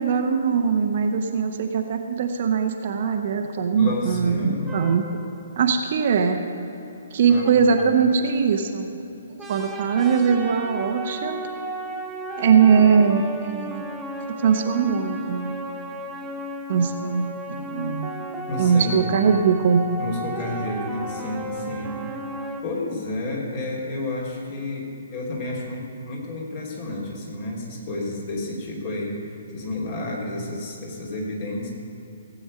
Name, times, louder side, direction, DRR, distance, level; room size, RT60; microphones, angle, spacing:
voice 1, 0.0-5.0 5.6-6.4 7.1-8.9 9.5-11.4 11.9-12.0 12.4-13.8 14.4-15.8 16.7-18.1 18.6-19.8, right 6 dB, 45° right, 5 dB, 0.9 m, -21 dB
voice 2, 3.8-4.7 7.3-7.7 18.5-19.3 20.0-22.0 22.6-29.2 29.5-31.7, left 2 dB, 40° left, -3 dB, 3.0 m, -30 dB
sound 1, 4.7-5.6 7.4-7.5 7.8-7.9 8.1-8.2 8.4-8.5 9.4-22.6, right 1 dB, 10° right, 0.8 m, -34 dB
16.0 x 8.3 x 5.2 m, 2.9 s
figure-of-eight pair, 130°, 0 cm